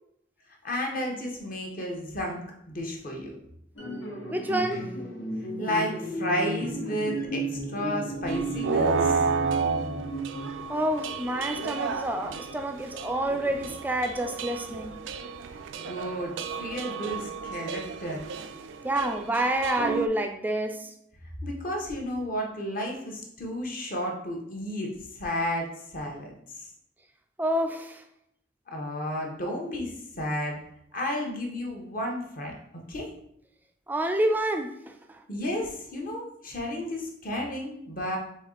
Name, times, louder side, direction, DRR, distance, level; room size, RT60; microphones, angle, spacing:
voice 1, 0.6-2.4 2.7-3.4 5.6-9.3 15.8-16.3 16.6-18.2 21.4-25.7 25.9-26.3 28.7-29.9 30.2-30.6 30.9-32.5 32.9-33.1 35.3-38.2, left 1 dB, 45° left, 0.9 m, -32 dB
sound 1, 3.8-10.8, right 2 dB, 85° left, 1.4 m, -34 dB
voice 2, 4.3-4.9 10.7-15.0 18.8-20.9 27.4-28.0 33.9-35.2, right 1 dB, 10° right, 0.3 m, -28 dB
sound 2, 8.3-20.1, right 5 dB, 85° right, 0.4 m, -32 dB
4.3 x 3.2 x 3.8 m
head